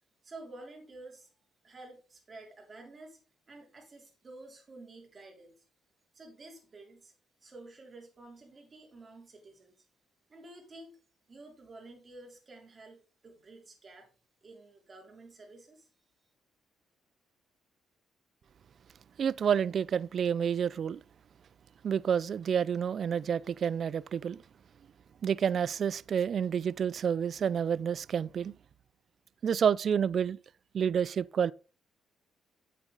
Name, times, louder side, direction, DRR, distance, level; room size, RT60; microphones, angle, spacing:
voice 1, 0.2-1.3 1.6-3.2 3.5-5.6 6.1-7.1 7.4-9.9 10.3-11.0 11.3-14.1 14.4-15.9, right 2 dB, 35° right, 3.5 m, -51 dB
voice 2, 19.2-21.0 21.8-24.4 25.2-28.5 29.4-30.4 30.7-31.5, right 7 dB, 55° right, 0.3 m, -29 dB
8.9 x 7.6 x 3.9 m
cardioid pair, 90°, 0 cm